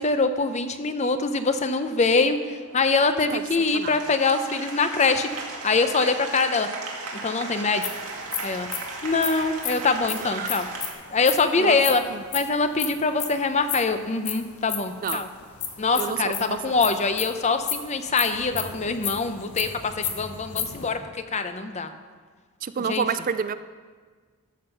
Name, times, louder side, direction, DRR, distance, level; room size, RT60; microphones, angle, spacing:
voice 1, 0.0-5.3 5.6-6.7 7.2-7.9 8.4-8.7 9.0-10.7 11.1-12.0 12.3-15.3 15.8-21.9 22.9-23.0, left 4 dB, 30° left, 9 dB, 0.6 m, -24 dB
Applause, 1.8-10.9, right 3 dB, 85° right, 1.9 m, -37 dB
sound 1, 7.8-11.4 11.7-13.3 13.7-20.9, left 8 dB, 85° left, 1.3 m, -32 dB
voice 2, 10.2-10.5 11.6-11.8 12.1-12.2 15.0-15.2 16.0-16.6 22.6-23.6, right 6 dB, 40° right, 12 dB, 0.3 m, -29 dB
13.5 x 7.2 x 5.5 m, 1.5 s
head